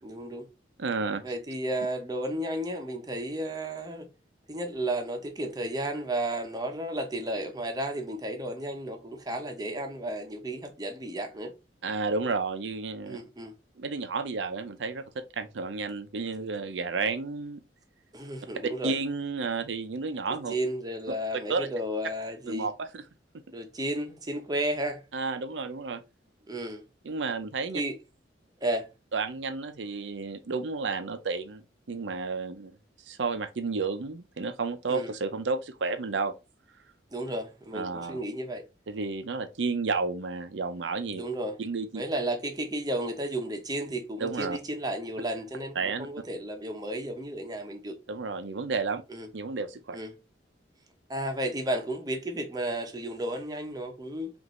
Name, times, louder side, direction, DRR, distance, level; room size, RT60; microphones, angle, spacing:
voice 1, 0.0-0.4 1.2-4.1 4.5-11.5 13.1-13.5 18.1-18.9 20.5-22.7 23.5-25.0 26.5-26.8 27.7-27.9 28.6-28.9 34.9-35.1 37.1-38.6 41.1-41.6 41.9-48.0 49.1-49.3 49.9-50.1 51.1-54.3, right 1 dB, 20° right, 0.8 m, -33 dB
voice 2, 0.8-1.2 11.8-13.2 13.8-17.6 18.8-20.5 21.5-21.7 22.5-23.0 25.1-26.0 27.0-27.8 29.1-32.7 33.1-36.3 37.7-38.2 38.9-41.2 41.6-42.0 44.2-44.6 45.8-46.1 48.1-49.0 49.3-50.0, right 4 dB, 85° right, 0.6 m, -31 dB
5.0 x 2.6 x 3.1 m
head